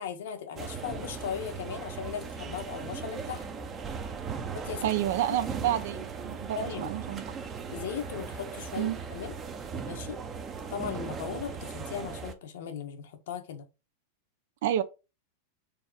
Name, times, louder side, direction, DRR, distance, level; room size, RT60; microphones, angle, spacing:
voice 1, 0.0-3.5 4.5-4.9 5.3-5.4 6.5-6.9 7.7-9.3 9.9-10.2 10.7-13.7, left 8 dB, 75° left, 1.5 m, -37 dB
sound 1, 0.6-12.3, right 5 dB, 20° right, 0.8 m, -38 dB
voice 2, 4.8-7.2 8.8-9.0 14.6-14.8, right 12 dB, 65° right, 0.8 m, -29 dB
4.5 x 3.9 x 5.3 m
supercardioid pair, 155°, 0 cm